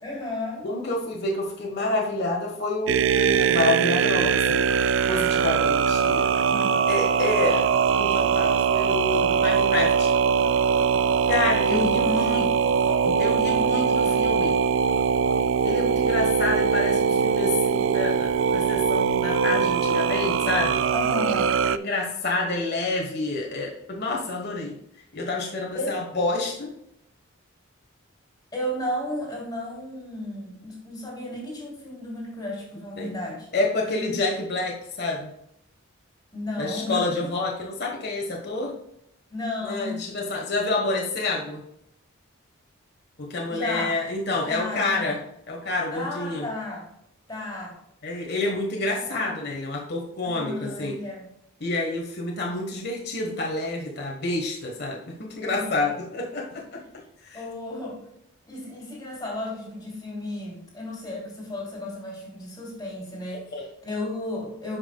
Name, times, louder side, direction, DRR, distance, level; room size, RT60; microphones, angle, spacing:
voice 1, 0.0-0.7 6.5-6.9 11.7-12.5 20.9-21.6 25.7-26.0 28.5-33.5 33.9-34.2 36.3-37.3 39.3-40.1 43.5-43.9 44.5-45.2 45.9-46.9 47.3-47.8 48.7-49.3 50.2-51.3 55.4-56.0 56.6-56.7 57.3-58.0 58.5-64.8, left 1 dB, 20° left, -3 dB, 3.0 m, -34 dB
voice 2, 0.6-4.7 5.1-6.3 6.9-7.6 8.0-10.1 11.3-12.5 13.0-14.5 15.6-20.8 21.7-24.7 25.1-26.7 33.0-33.1 33.5-35.3 36.6-38.7 39.6-41.6 43.2-45.2 45.5-46.4 48.0-51.0 51.6-56.8 57.3-57.4 63.5-63.6, left 2 dB, 50° left, -1 dB, 1.3 m, -28 dB
sound 1, 2.9-21.8, right 6 dB, 60° right, 0.3 m, -22 dB
10.5 x 5.9 x 2.3 m, 0.77 s
head